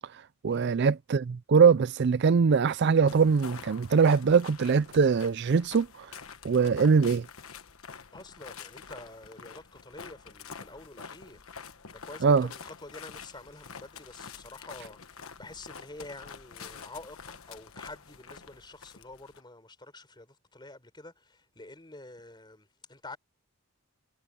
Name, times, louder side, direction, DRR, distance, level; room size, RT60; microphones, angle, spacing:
voice 1, 0.0-6.2 6.4-7.3 12.2-12.5, right 5 dB, 50° right, 0.4 m, -23 dB
sound 1, 3.1-19.4, left 6 dB, 70° left, 1.3 m, -47 dB
voice 2, 8.1-11.4 11.9-23.2, left 2 dB, 20° left, 4.0 m, -48 dB
head